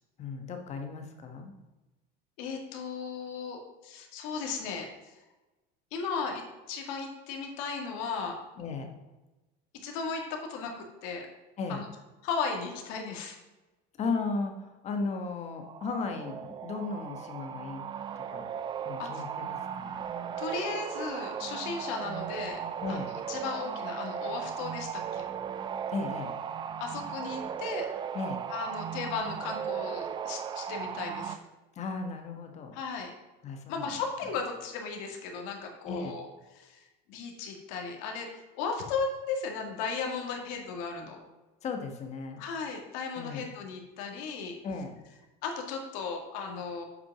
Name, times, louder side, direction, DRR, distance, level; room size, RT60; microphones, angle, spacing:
voice 1, 0.2-1.5 8.6-8.9 11.6-11.8 14.0-17.8 18.3-18.5 18.8-20.0 22.8-23.1 25.9-26.3 28.1-28.4 31.8-32.7 33.4-33.9 35.8-36.1 41.6-42.4 43.2-43.4 44.6-45.0, left 4 dB, 35° left, 5 dB, 1.3 m, -35 dB
voice 2, 2.4-4.9 5.9-6.4 6.7-8.4 9.8-11.3 11.7-11.8 12.2-13.4 19.0-19.1 20.4-22.6 22.9-25.2 26.8-27.9 28.5-31.4 32.7-33.1 33.7-36.3 36.6-36.8 37.1-41.2 42.4-44.6 45.4-46.8, left 5 dB, 75° left, 3 dB, 2.0 m, -36 dB
sound 1, 15.6-31.4, right 8 dB, 25° right, 0.4 m, -37 dB
8.2 x 6.0 x 5.9 m, 1.1 s
cardioid pair, 155°, 20 cm